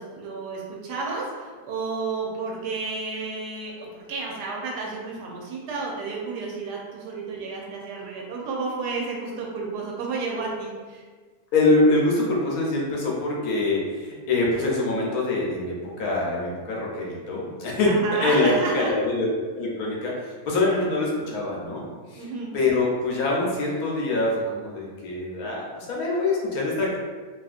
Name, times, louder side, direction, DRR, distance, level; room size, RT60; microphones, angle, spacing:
voice 1, 0.0-11.0 17.9-18.9 22.1-22.5, right 3 dB, 85° right, -2 dB, 1.2 m, -31 dB
voice 2, 11.5-17.9 18.2-19.3 19.5-21.8 22.1-27.0, left 2 dB, 70° left, -4 dB, 1.1 m, -24 dB
3.0 x 2.6 x 2.4 m, 1.5 s
omnidirectional pair, 1.7 m